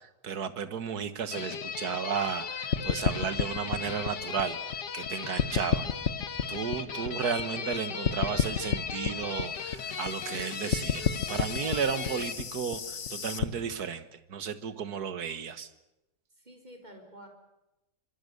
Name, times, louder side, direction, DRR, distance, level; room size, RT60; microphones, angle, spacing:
voice 1, 0.0-4.6 4.9-5.9 6.5-15.7, right 7 dB, 65° right, 13 dB, 1.9 m, -34 dB
sound 1, 1.3-12.3, left 7 dB, 90° left, 2.0 m, -37 dB
sound 2, 2.7-5.1 5.4-7.8 8.0-13.5, left 7 dB, 45° left, 1.4 m, -30 dB
voice 2, 6.9-7.2 7.5-7.9 16.4-17.3, right 1 dB, 25° right, 4 dB, 4.7 m, -50 dB
25.5 x 24.0 x 6.8 m, 0.94 s
omnidirectional pair, 1.8 m